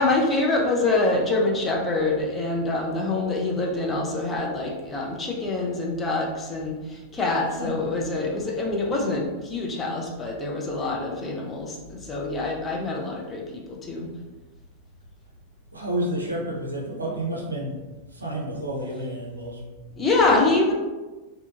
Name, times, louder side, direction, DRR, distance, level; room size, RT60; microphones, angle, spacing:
voice 1, 0.0-14.1 20.0-20.7, left 2 dB, 20° left, -1 dB, 0.5 m, -25 dB
voice 2, 15.7-17.8 18.1-19.6, right 1 dB, 80° right, -2 dB, 0.5 m, -30 dB
2.7 x 2.2 x 2.5 m, 1.2 s
figure-of-eight pair, 90°, 0 cm